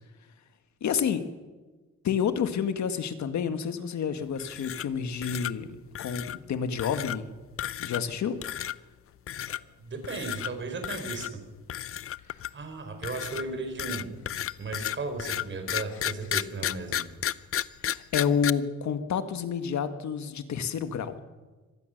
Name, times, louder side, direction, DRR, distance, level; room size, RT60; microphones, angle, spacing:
voice 1, 0.8-1.3 2.0-7.3 7.8-8.6 17.9-21.2, left 7 dB, 75° left, 10 dB, 1.7 m, -29 dB
sound 1, 4.4-5.0 5.2-5.5 5.9-6.4 6.8-7.2 7.6-8.1 8.4-8.8 9.3-9.6 10.0-10.5 10.8-11.3 11.7-12.6 13.0-18.5, left 11 dB, 50° left, 0.6 m, -32 dB
voice 2, 9.8-11.4 12.5-14.1 14.6-17.0, right 3 dB, 40° right, 6 dB, 4.6 m, -35 dB
25.0 x 18.5 x 6.6 m, 1.3 s
wide cardioid pair, 150°, 29 cm